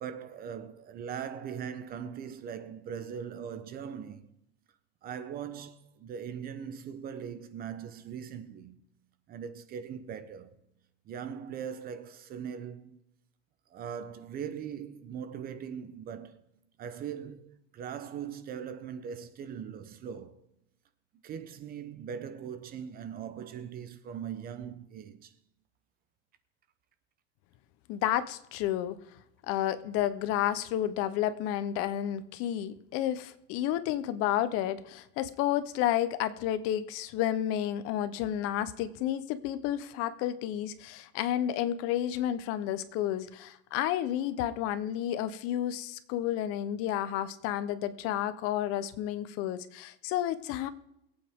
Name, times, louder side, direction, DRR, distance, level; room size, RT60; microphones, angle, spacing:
voice 1, 0.0-4.3 5.0-8.8 9.3-10.6 11.1-13.0 13.7-16.4 16.8-20.5 21.2-25.3, right 8 dB, 25° right, 0.7 m, -40 dB
voice 2, 27.9-29.0 29.5-50.7, left 11 dB, 45° left, 0.9 m, -31 dB
22.5 x 8.7 x 3.6 m
supercardioid pair, 165°, 34 cm